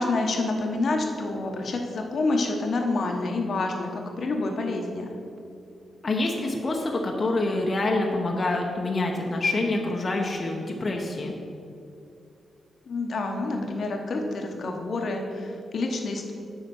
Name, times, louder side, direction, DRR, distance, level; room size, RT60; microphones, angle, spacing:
voice 1, 0.0-5.1 12.9-16.3, left 2 dB, 55° left, 3 dB, 1.1 m, -28 dB
voice 2, 6.0-11.3, left 2 dB, 35° left, 0 dB, 0.9 m, -26 dB
8.3 x 5.0 x 7.0 m, 2.5 s
cardioid pair, 115°, 0 cm